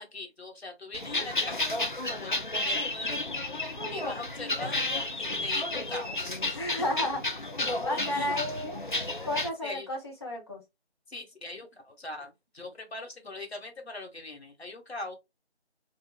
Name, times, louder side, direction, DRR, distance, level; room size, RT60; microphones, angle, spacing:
voice 1, 0.0-1.8 2.1-3.3 3.9-4.9 5.2-6.6 7.9-8.3 9.6-9.9 11.1-15.1, left 2 dB, 65° left, 1.3 m, -41 dB
sound 1, 0.9-9.5, left 2 dB, 50° left, 0.4 m, -32 dB
voice 2, 3.8-4.3 6.5-8.8 9.2-10.6, left 1 dB, 25° left, 0.9 m, -33 dB
3.6 x 2.5 x 2.3 m
figure-of-eight pair, 165°, 34 cm